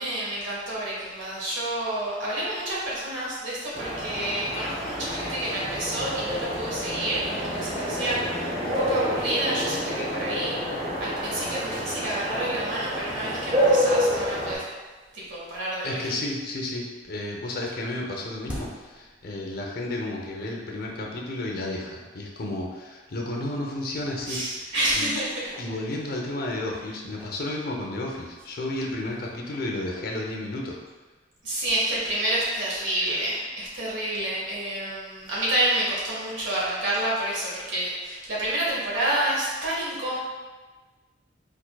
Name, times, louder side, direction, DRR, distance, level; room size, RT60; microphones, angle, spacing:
voice 1, 0.0-10.6 11.0-14.6 15.1-16.0 24.3-25.5 31.4-40.2, right 1 dB, 85° right, -6 dB, 1.2 m, -29 dB
sound 1, 3.7-14.6, equal, 40° right, 0.9 m, -28 dB
voice 2, 15.8-24.5 24.9-25.1 25.6-30.8, left 1 dB, 55° left, -1 dB, 0.5 m, -32 dB
sound 2, 17.0-19.9 20.2-20.3 21.1-21.2 21.7-21.8 22.1-22.3 23.0-23.5 23.9-26.5 26.9-30.9, equal, 5° right, 0.5 m, -47 dB
4.5 x 2.6 x 2.2 m, 1.3 s
head